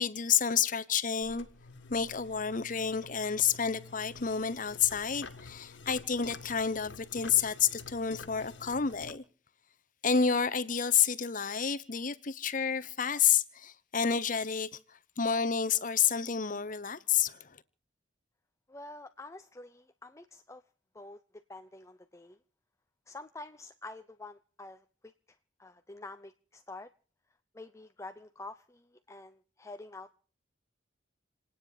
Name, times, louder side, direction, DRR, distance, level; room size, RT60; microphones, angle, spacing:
voice 1, 0.0-1.5 1.9-9.2 10.0-14.7 15.2-17.5, left 7 dB, 45° left, 1.0 m, -29 dB
sound 1, 1.2-9.1, left 4 dB, 70° left, 1.8 m, -49 dB
voice 2, 18.7-20.6 20.9-22.4 23.1-24.8 25.6-26.9 27.5-30.1, left 2 dB, 15° left, 0.7 m, -47 dB
28.5 x 9.7 x 4.9 m
head